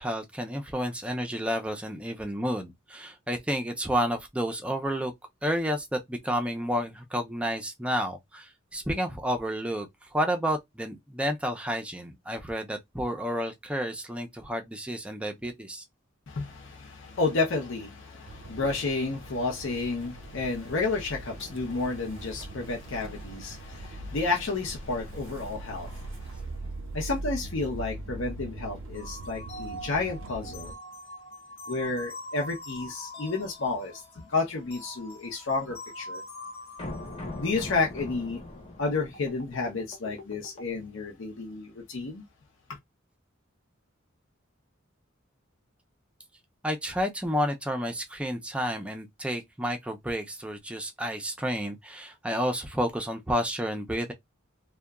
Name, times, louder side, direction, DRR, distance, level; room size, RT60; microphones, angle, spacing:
voice 1, 0.0-5.1 5.4-15.8 46.6-54.1, equal, 5° right, 0.4 m, -30 dB
voice 2, 16.3-26.5 26.9-30.7 31.7-36.2 37.4-38.4 38.8-42.2, left 3 dB, 65° left, 0.7 m, -31 dB
Motor vehicle (road) / Engine starting, 18.3-30.7, right 2 dB, 70° right, 0.4 m, -41 dB
sound 1, 28.9-40.7, left 1 dB, 30° left, 0.8 m, -42 dB
2.7 x 2.2 x 2.3 m
head